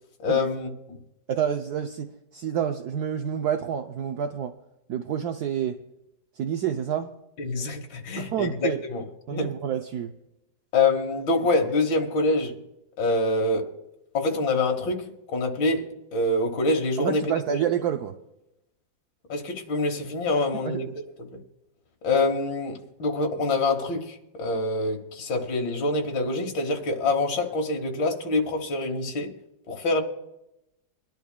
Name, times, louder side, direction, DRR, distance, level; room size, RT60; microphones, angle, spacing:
voice 1, 0.2-1.0 7.4-9.0 9.3-9.5 10.7-12.6 13.0-13.7 14.1-15.9 16.1-17.2 17.5-17.6 19.3-20.9 21.2-21.4 22.0-29.3 29.7-30.0, left 2 dB, 85° left, 2.0 m, -25 dB
voice 2, 1.3-4.5 4.9-5.8 6.4-7.1 8.2-8.8 9.3-10.1 17.0-18.1 20.5-20.9, right 9 dB, 70° right, 1.0 m, -28 dB
23.5 x 10.5 x 2.3 m
omnidirectional pair, 2.0 m